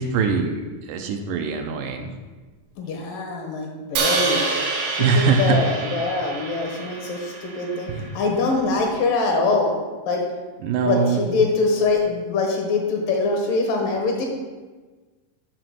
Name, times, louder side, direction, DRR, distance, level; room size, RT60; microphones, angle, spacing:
voice 1, 0.0-2.1 5.0-5.6 7.9-8.2 10.6-11.2, right 5 dB, 80° right, 4 dB, 2.2 m, -22 dB
voice 2, 2.8-4.5 4.9-9.8 10.1-10.2 10.8-14.3, left 3 dB, 80° left, 1 dB, 3.0 m, -23 dB
Crash cymbal, 4.0-8.1, right 3 dB, 65° right, 1.7 m, -27 dB
7.7 x 4.9 x 6.4 m, 1.3 s
omnidirectional pair, 3.9 m